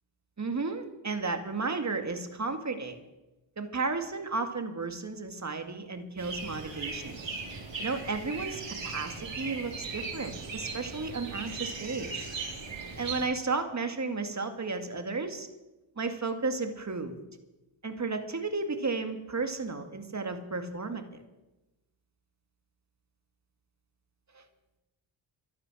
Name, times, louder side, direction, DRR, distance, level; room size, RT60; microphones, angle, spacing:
voice 1, 0.4-3.0 3.6-7.2 7.8-12.3 13.0-15.5 16.0-17.1 17.8-21.0 24.3-24.4, right 4 dB, 35° right, 6 dB, 2.2 m, -33 dB
sound 1, 6.2-13.3, right 4 dB, 65° right, 5.8 m, -38 dB
13.0 x 11.5 x 6.3 m, 1.0 s
cardioid pair, 60°, 49 cm